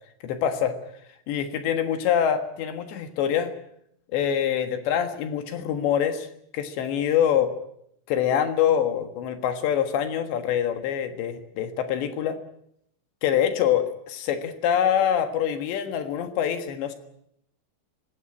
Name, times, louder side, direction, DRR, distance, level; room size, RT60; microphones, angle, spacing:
voice 1, 0.2-0.8 1.3-3.5 4.1-6.3 6.5-7.6 8.1-12.4 13.2-16.9, left 9 dB, 70° left, 8 dB, 3.6 m, -25 dB
19.5 x 17.0 x 9.9 m, 0.73 s
omnidirectional pair, 5.7 m